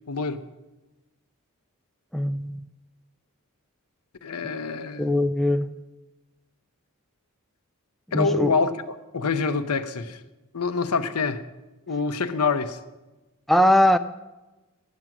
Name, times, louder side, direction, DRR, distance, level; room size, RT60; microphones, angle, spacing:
voice 1, 0.1-0.4 4.2-5.3 8.1-8.7 9.1-10.2 10.5-11.4 11.9-12.8, left 4 dB, 90° left, 0.8 m, -26 dB
voice 2, 2.1-2.7 5.0-5.7 8.1-8.5 13.5-14.0, left 1 dB, ahead, 0.3 m, -20 dB
12.0 x 9.0 x 6.0 m
head